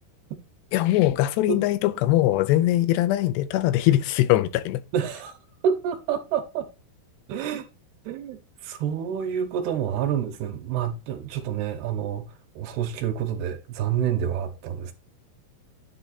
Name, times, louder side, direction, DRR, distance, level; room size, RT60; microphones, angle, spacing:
voice 1, 0.7-4.8, left 14 dB, 90° left, 2.8 m, -21 dB
voice 2, 4.9-5.3 5.6-6.7 7.3-7.7 8.1-12.3 12.6-14.9, right 8 dB, 80° right, 2.9 m, -28 dB
9.8 x 3.5 x 4.0 m
omnidirectional pair, 4.7 m